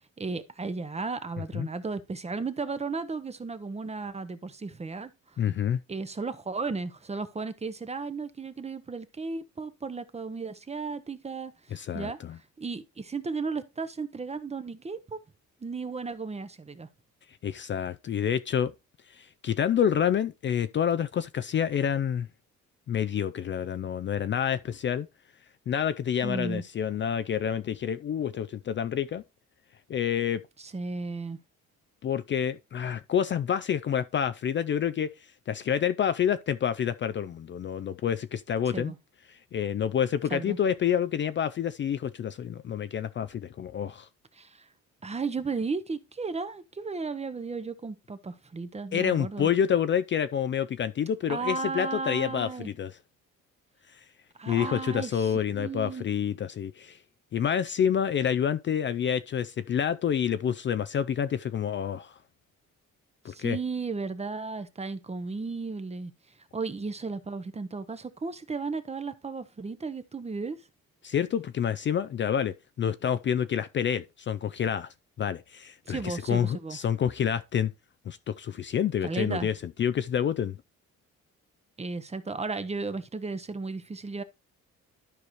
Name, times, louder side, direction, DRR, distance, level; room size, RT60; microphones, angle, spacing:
voice 1, 0.0-5.4 5.9-12.2 12.6-15.2 15.6-16.9 26.2-26.6 30.6-31.4 38.7-39.0 40.3-40.6 44.3-44.7 45.0-49.5 51.3-52.7 54.4-56.1 63.3-66.1 66.5-70.6 75.9-76.8 79.0-79.5 81.8-84.2, right 4 dB, 20° right, 0.7 m, -34 dB
voice 2, 5.4-5.8 11.7-12.4 17.4-18.7 19.1-22.3 22.9-25.1 25.7-29.2 29.9-30.4 32.0-35.1 35.5-38.9 39.3-44.1 48.9-52.9 53.9-54.0 54.5-57.0 57.3-62.2 63.2-63.6 71.0-74.9 75.2-77.7 78.1-80.6, left 8 dB, 40° left, 0.4 m, -28 dB
12.0 x 4.9 x 3.0 m
cardioid pair, 90°, 30 cm